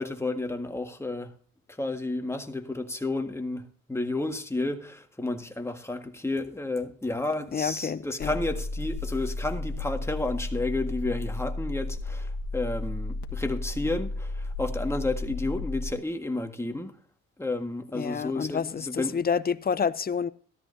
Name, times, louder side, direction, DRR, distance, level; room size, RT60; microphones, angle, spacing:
voice 1, 0.0-1.3 1.8-16.9 17.4-19.2, left 2 dB, 10° left, 1.7 m, -31 dB
voice 2, 7.5-8.3 17.9-20.3, left 6 dB, 30° left, 0.6 m, -28 dB
sound 1, 8.2-15.9, left 2 dB, 75° left, 1.6 m, -33 dB
14.0 x 13.0 x 2.7 m
cardioid pair, 90°, 30 cm